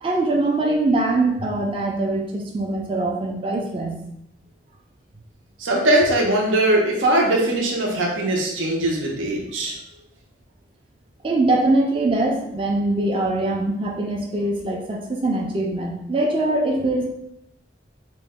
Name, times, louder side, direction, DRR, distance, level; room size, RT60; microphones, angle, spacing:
voice 1, 0.0-4.0 11.2-17.1, right 2 dB, 25° right, 0 dB, 0.4 m, -22 dB
voice 2, 5.6-9.7, right 1 dB, 85° right, -1 dB, 0.6 m, -20 dB
2.9 x 2.1 x 3.5 m, 0.80 s
head